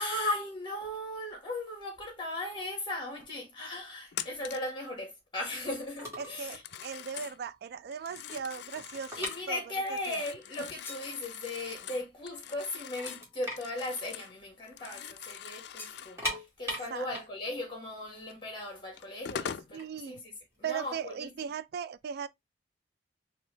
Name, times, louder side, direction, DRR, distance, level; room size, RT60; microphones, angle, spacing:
voice 1, 0.0-6.6 9.2-21.3, left 1 dB, 25° left, 1.7 m, -37 dB
Telephone, 4.1-4.7 6.2-7.4 7.9-9.5 9.9-14.4 14.6-16.2 18.3-18.4 19.0-19.7, left 9 dB, 65° left, 0.4 m, -43 dB
sound 1, 6.0-6.4 6.7-6.9 7.4-7.5 7.8-10.1 10.3-10.4 11.1-11.2 11.5-12.3 12.6-12.7 13.0-15.0 15.2-15.4 15.9-18.9 19.6-21.3, equal, 15° right, 2.1 m, -40 dB
voice 2, 6.2-9.6 10.1-10.2 16.9-17.1 19.7-20.2 20.6-22.3, right 7 dB, 60° right, 0.3 m, -38 dB
sound 2, 10.5-11.2 13.1-13.5 15.8-16.0, left 3 dB, 10° left, 0.6 m, -48 dB
4.4 x 2.8 x 3.2 m
head